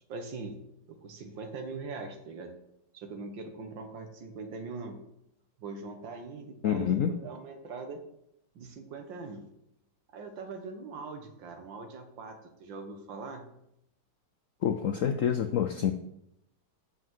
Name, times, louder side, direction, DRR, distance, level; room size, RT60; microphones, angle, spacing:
voice 1, 0.1-0.6 0.9-2.5 2.9-5.0 5.6-8.0 8.6-9.4 10.1-13.4, right 3 dB, 75° right, 6 dB, 2.0 m, -41 dB
voice 2, 6.6-7.2 14.6-15.9, left 9 dB, 75° left, 8 dB, 0.7 m, -27 dB
7.8 x 6.2 x 7.5 m, 0.80 s
omnidirectional pair, 2.0 m